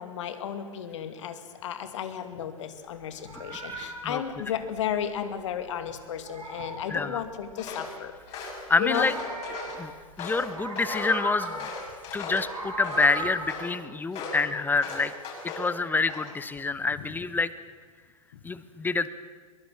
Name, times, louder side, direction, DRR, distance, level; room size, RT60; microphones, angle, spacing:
voice 1, 0.0-8.2 8.8-9.2, left 9 dB, 60° left, 9 dB, 2.3 m, -33 dB
Meow, 3.0-5.7 6.0-7.7 8.5-10.1 10.4-11.9 12.2-13.5, right 2 dB, 80° right, 5.0 m, -38 dB
voice 2, 3.7-4.2 6.9-7.2 8.7-9.1 9.7-9.9 10.2-11.7 12.1-15.1 15.6-17.5 18.4-19.1, left 4 dB, 10° left, 15 dB, 1.0 m, -27 dB
Walk footsteps, 7.6-7.9 8.3-9.8 10.2-12.5 12.8-13.7 14.1-14.4 14.8-15.7 16.1-16.5, left 3 dB, 35° left, 7.4 m, -37 dB
22.5 x 22.5 x 7.8 m, 1.5 s
figure-of-eight pair, 95°, 18 cm